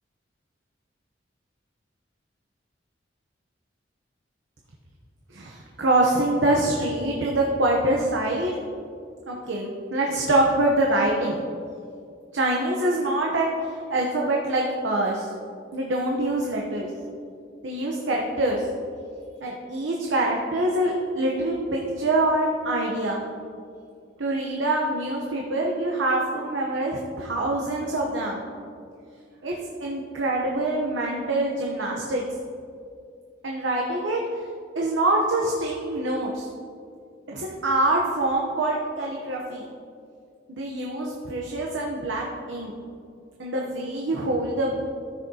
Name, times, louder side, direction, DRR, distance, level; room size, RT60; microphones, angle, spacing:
voice 1, 5.3-8.5 9.3-11.4 12.3-15.3 15.7-16.9 17.6-18.7 19.4-23.2 24.2-28.4 29.4-29.5 29.8-32.2 33.4-34.2 34.7-36.5 37.3-39.7 40.5-42.7 43.4-44.8, right 1 dB, 90° right, -2 dB, 0.9 m, -25 dB
14.0 x 6.3 x 2.8 m, 2.4 s
head